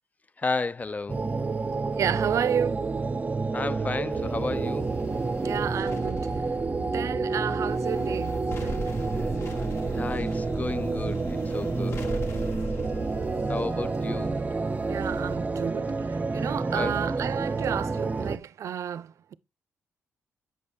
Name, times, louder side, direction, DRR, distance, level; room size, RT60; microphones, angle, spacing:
voice 1, 0.4-1.2 3.5-4.9 9.9-12.0 13.5-14.4 16.6-17.0, left 3 dB, 30° left, 0.4 m, -32 dB
sound 1, 1.1-18.4, right 3 dB, 30° right, 0.7 m, -29 dB
voice 2, 2.0-2.9 5.4-6.3 6.8-8.9 14.9-19.3, right 9 dB, 65° right, 0.5 m, -31 dB
sound 2, 4.1-15.4, equal, 55° left, 1.7 m, -40 dB
7.7 x 5.4 x 3.4 m
cardioid pair, 70°, 6 cm